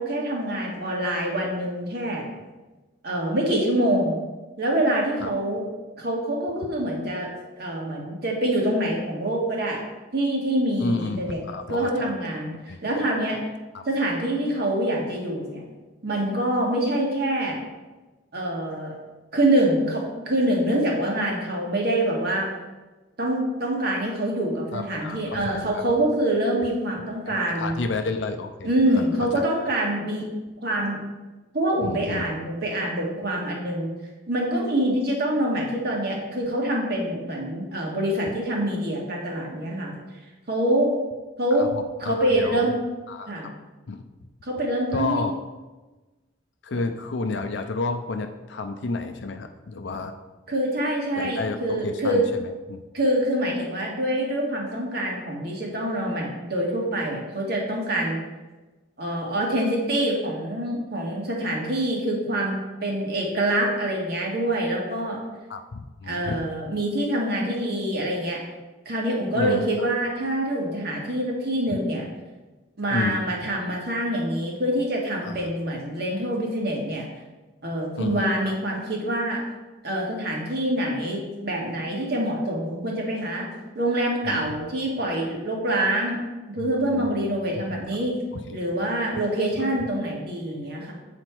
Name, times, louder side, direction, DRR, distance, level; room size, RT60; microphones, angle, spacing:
voice 1, 0.0-2.2 3.0-4.2 4.6-5.7 6.0-9.8 10.1-11.4 11.7-13.4 13.8-15.6 16.0-17.6 18.3-19.0 19.3-22.5 23.2-27.8 28.6-30.3 30.6-31.0 31.5-33.9 34.3-39.9 40.5-40.9 41.4-41.7 42.0-42.8 43.3-43.5 44.4-45.2 46.7-46.8 50.5-52.2 52.9-58.2 59.0-65.2 66.1-68.4 68.8-72.0 72.8-77.1 77.6-79.4 79.8-83.5 83.7-86.2 86.5-88.1 88.5-90.9, right 1 dB, 60° right, -1 dB, 1.7 m, -25 dB
voice 2, 10.8-12.1 12.7-12.8 13.7-13.8 24.7-25.8 27.3-29.1 29.3-29.5 31.8-32.3 41.6-41.7 42.0-42.7 43.1-43.5 43.9-44.0 44.9-45.3 46.6-50.1 51.2-52.8 65.5-66.4 69.3-69.9 71.7-71.8 72.9-73.2 75.2-75.4 78.0-78.3 84.2-84.4 86.6-87.1 87.5-87.8 88.5-88.6, left 3 dB, 70° left, 6 dB, 0.5 m, -31 dB
7.8 x 4.3 x 4.5 m, 1.2 s
head